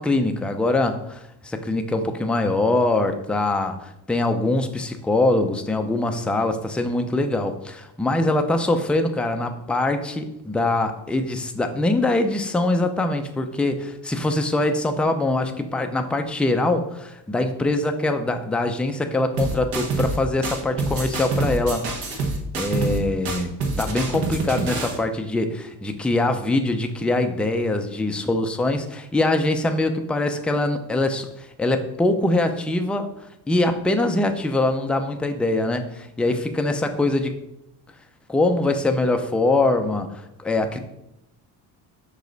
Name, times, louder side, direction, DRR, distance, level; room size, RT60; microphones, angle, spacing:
voice 1, 0.0-21.9 22.5-33.1 33.5-37.4 38.3-40.8, left 2 dB, 5° left, 6 dB, 0.3 m, -23 dB
sound 1, 19.4-20.2 20.4-23.0 23.2-25.0, right 3 dB, 70° right, 1.4 m, -26 dB
5.6 x 5.1 x 3.9 m, 0.85 s
cardioid pair, 130°, 39 cm